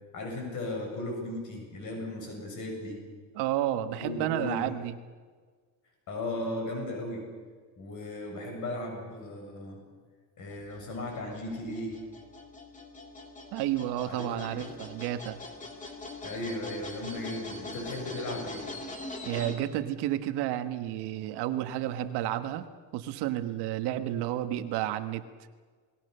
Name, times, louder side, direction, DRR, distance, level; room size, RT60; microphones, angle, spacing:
voice 1, 0.1-3.0 3.9-4.6 6.1-7.3 7.8-9.8 10.4-12.0 14.1-14.6 16.2-18.6, left 1 dB, 40° left, 1 dB, 7.5 m, -36 dB
voice 2, 3.3-5.0 13.5-15.4 19.2-25.2, right 12 dB, 55° right, 9 dB, 1.5 m, -31 dB
sound 1, 10.5-19.6, left 2 dB, 15° left, 2.6 m, -43 dB
28.5 x 20.5 x 6.8 m, 1.6 s
cardioid pair, 175°, 48 cm